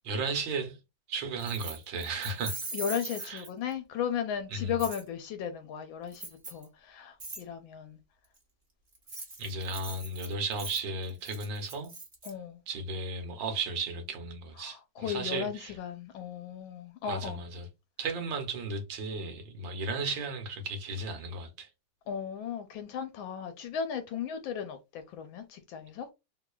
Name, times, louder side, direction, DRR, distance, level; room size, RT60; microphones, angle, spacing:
voice 1, 0.0-0.8 1.1-2.6 3.2-3.4 4.5-4.8 9.4-11.9 12.7-15.7 17.0-17.7 18.0-21.7, right 3 dB, 70° right, 1.5 m, -35 dB
Keys jangling, 1.4-3.7 4.8-5.0 6.1-6.6 7.2-7.4 8.9-12.3, right 3 dB, 30° right, 0.9 m, -41 dB
voice 2, 2.7-8.0 12.2-12.6 14.6-17.4 22.1-26.1, left 8 dB, 80° left, 1.3 m, -36 dB
3.8 x 3.1 x 2.2 m
omnidirectional pair, 2.2 m